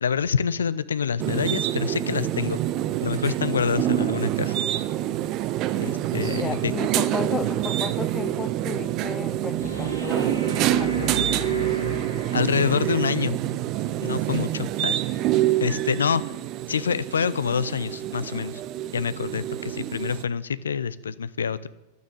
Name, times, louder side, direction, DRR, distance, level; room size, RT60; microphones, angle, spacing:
voice 1, 0.0-2.6 3.0-4.6 5.7-6.7 12.3-13.4 14.0-15.0 15.6-16.2 16.7-18.6 18.9-21.7, left 6 dB, 70° left, 16 dB, 0.6 m, -26 dB
sound 1, 1.2-20.2, right 13 dB, 40° right, 0.7 m, -26 dB
voice 2, 6.3-10.4 10.8-11.5, left 6 dB, 20° left, 16 dB, 0.5 m, -34 dB
sound 2, 9.6-12.9 15.6-15.7, left 1 dB, 90° right, 3.0 m, -35 dB
12.0 x 9.5 x 9.6 m, 0.96 s
figure-of-eight pair, 90°, 0 cm